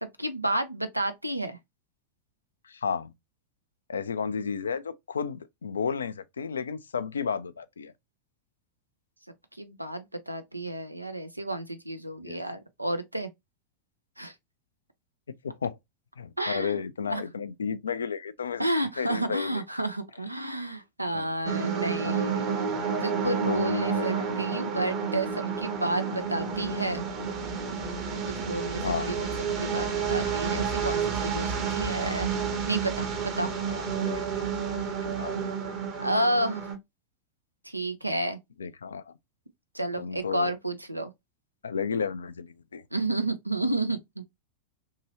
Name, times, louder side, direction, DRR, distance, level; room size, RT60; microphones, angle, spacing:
voice 1, 0.0-1.6 9.6-13.3 14.2-14.3 16.4-17.2 18.6-22.6 23.0-27.1 28.3-29.3 29.6-32.3 32.7-33.5 36.0-36.7 37.6-38.4 39.7-41.1 42.9-44.3, right 1 dB, 85° right, 0.5 m, -31 dB
voice 2, 2.6-3.1 3.9-7.9 12.2-12.4 15.4-15.8 16.2-18.6 19.0-19.6 21.1-21.3 22.0-22.6 23.4-24.3 28.8-29.2 33.7-34.5 35.0-35.5 38.6-39.1 40.0-40.5 41.6-42.8, left 6 dB, 70° left, 0.3 m, -33 dB
sound 1, 21.5-36.8, right 6 dB, 40° right, 1.0 m, -30 dB
3.0 x 2.7 x 2.7 m
figure-of-eight pair, 90°, 0 cm